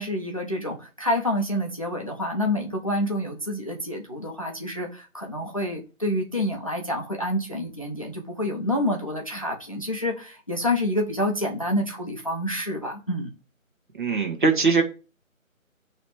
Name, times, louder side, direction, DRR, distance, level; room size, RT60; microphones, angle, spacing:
voice 1, 0.0-13.3, left 1 dB, 25° left, 2 dB, 0.8 m, -28 dB
voice 2, 14.0-14.8, right 4 dB, 35° right, 3 dB, 1.7 m, -21 dB
8.8 x 3.2 x 4.9 m, 0.33 s
figure-of-eight pair, 165°, 41 cm